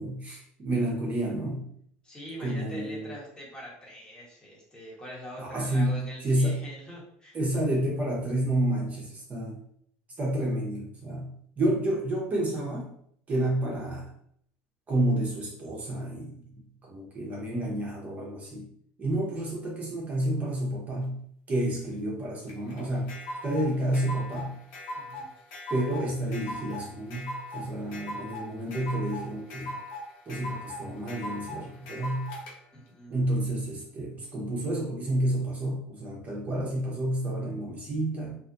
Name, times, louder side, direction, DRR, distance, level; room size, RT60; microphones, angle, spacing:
voice 1, 0.0-1.7 2.4-3.1 5.4-6.7 7.3-9.6 10.2-12.9 13.3-14.1 14.9-18.6 19.0-21.2 21.5-24.5 25.7-29.8 30.3-32.3 33.1-38.4, right 1 dB, 30° right, -3 dB, 0.9 m, -30 dB
voice 2, 2.0-7.4 25.0-25.3 32.7-33.2, equal, 20° left, -4 dB, 1.3 m, -43 dB
sound 1, 22.5-32.5, left 1 dB, 75° left, 0.9 m, -39 dB
2.6 x 2.4 x 2.6 m, 0.66 s
supercardioid pair, 95°, 5 cm